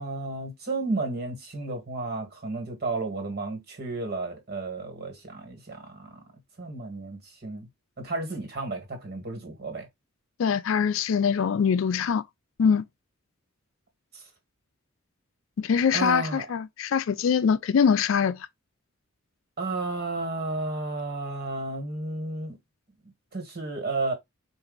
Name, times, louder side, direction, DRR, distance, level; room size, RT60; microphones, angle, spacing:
voice 1, 0.0-6.2 6.6-7.7 8.0-9.9 14.1-14.2 15.9-16.4 19.6-22.6 23.3-24.1, right 3 dB, 50° right, 1.6 m, -32 dB
voice 2, 10.4-12.2 12.6-12.8 15.6-18.5, left 6 dB, 70° left, 0.4 m, -23 dB
4.1 x 2.6 x 3.8 m
head